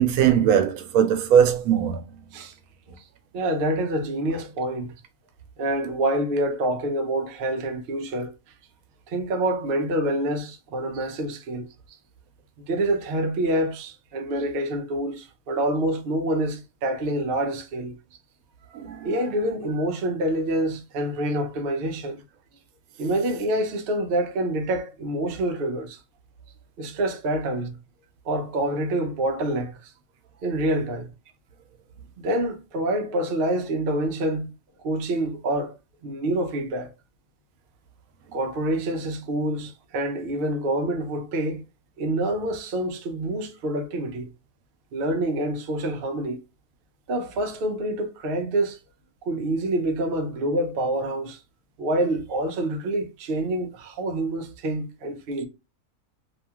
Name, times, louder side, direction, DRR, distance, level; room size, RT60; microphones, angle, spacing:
voice 1, 0.0-2.0 18.7-19.2, right 9 dB, 90° right, 1.0 m, -20 dB
voice 2, 3.3-4.9 5.6-8.3 9.1-11.7 12.7-17.9 19.0-22.2 23.0-26.0 26.8-27.7 28.2-29.9 30.4-31.1 32.2-34.5 34.8-35.7 36.0-36.9 38.3-41.6 42.0-44.3 44.9-46.4 47.1-48.8 49.2-51.4 51.8-55.5, right 1 dB, 60° right, 0.6 m, -27 dB
2.7 x 2.3 x 2.7 m
omnidirectional pair, 1.5 m